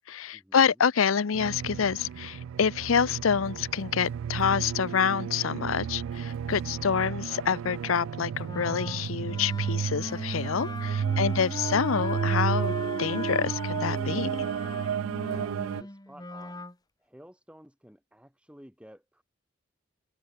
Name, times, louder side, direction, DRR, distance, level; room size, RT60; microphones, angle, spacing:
voice 1, 0.0-14.3, left 7 dB, 85° left, 0.6 m, -27 dB
sound 1, 1.3-15.8, right 7 dB, 80° right, 0.3 m, -32 dB
Wind instrument woodwind instrument, 8.4-16.7, left 1 dB, 20° left, 2.0 m, -38 dB
voice 2, 14.9-16.6 17.0-19.2, equal, 5° right, 3.8 m, -53 dB
open air
head